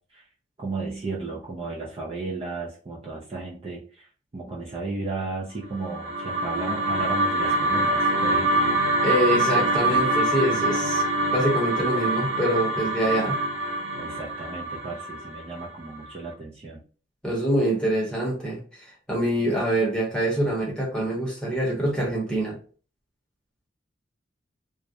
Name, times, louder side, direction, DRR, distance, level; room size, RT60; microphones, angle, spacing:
voice 1, 0.6-4.1 4.3-8.7 9.9-10.1 13.9-16.8, right 3 dB, 30° right, 0.4 m, -34 dB
sound 1, 5.7-16.0, right 2 dB, 55° right, 0.9 m, -25 dB
voice 2, 9.0-11.0 11.3-13.4 17.2-22.6, right 1 dB, 5° left, 0.8 m, -25 dB
2.3 x 2.0 x 2.7 m
head